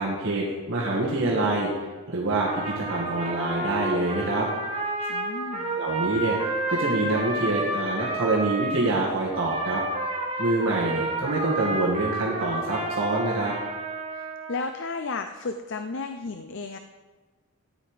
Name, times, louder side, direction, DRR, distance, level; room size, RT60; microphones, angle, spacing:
voice 1, 0.0-1.7 2.1-4.5 5.8-6.4 6.7-9.8 10.4-13.5, right 2 dB, 60° right, -5 dB, 2.1 m, -26 dB
Trumpet, 2.4-8.8 9.3-14.6, right 2 dB, 25° right, 1.6 m, -30 dB
voice 2, 5.1-5.8 14.1-16.8, left 3 dB, 55° left, 7 dB, 0.6 m, -33 dB
14.0 x 9.1 x 5.0 m, 1.3 s
head